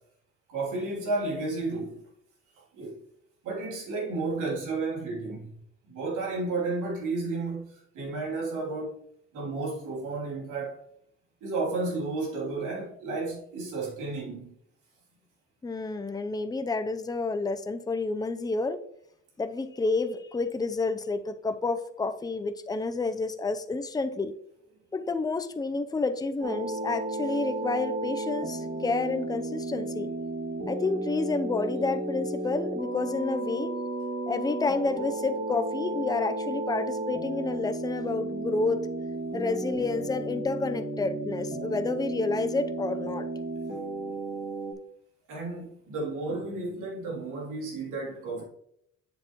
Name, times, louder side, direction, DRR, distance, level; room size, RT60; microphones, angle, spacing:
voice 1, 0.5-2.0 2.5-3.0 3.4-5.5 5.9-9.0 9.3-10.8 11.4-14.5 45.3-48.4, right 3 dB, 90° right, 3.1 m, -32 dB
voice 2, 15.6-18.8 19.4-24.3 24.9-30.1 30.7-33.8 34.3-38.8 39.3-43.3, left 3 dB, 15° left, 0.6 m, -29 dB
sound 1, 26.4-44.7, right 2 dB, 35° right, 2.3 m, -33 dB
7.9 x 7.4 x 3.0 m
cardioid pair, 90°, 30 cm